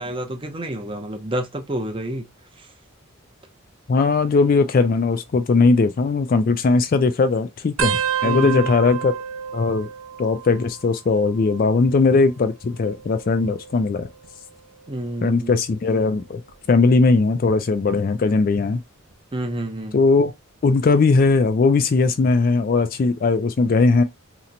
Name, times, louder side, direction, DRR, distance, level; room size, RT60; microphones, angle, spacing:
voice 1, 0.0-2.2 2.6-2.7 8.2-8.7 14.9-15.6 19.3-20.0, right 1 dB, 25° right, 0.5 m, -29 dB
voice 2, 3.9-9.1 9.5-9.9 10.2-14.1 15.2-16.4 16.7-18.8 19.9-20.3 20.6-24.0, left 4 dB, 40° left, 0.3 m, -19 dB
sound 1, 7.8-11.0 11.2-11.8 12.8-14.3 14.9-15.3 16.5-16.9 18.4-18.5, right 9 dB, 80° right, 0.4 m, -30 dB
2.9 x 2.1 x 3.8 m
head